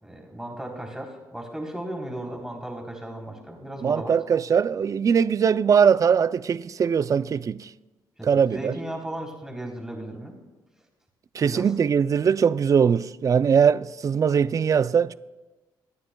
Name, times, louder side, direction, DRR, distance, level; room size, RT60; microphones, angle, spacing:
voice 1, 0.0-4.1 8.2-10.3 11.4-11.7, right 1 dB, 5° right, 3.5 m, -36 dB
voice 2, 3.8-7.7 8.2-8.7 11.3-15.1, right 7 dB, 40° right, 0.4 m, -21 dB
24.5 x 9.7 x 2.3 m
supercardioid pair, 65°, 9 cm